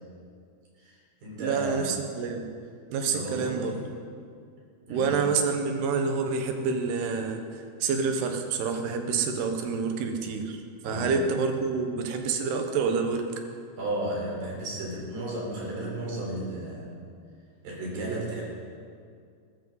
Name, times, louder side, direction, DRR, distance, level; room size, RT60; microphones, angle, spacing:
voice 1, 0.8-1.9 3.0-3.9 4.9-5.2 10.8-11.1 13.8-16.9 17.6-18.4, right 1 dB, 60° right, -4 dB, 5.7 m, -34 dB
voice 2, 1.4-2.5 2.9-3.8 4.9-10.6 10.8-13.3, right 5 dB, 85° right, 5 dB, 3.2 m, -28 dB
20.0 x 13.5 x 4.0 m, 2.3 s
omnidirectional pair, 4.6 m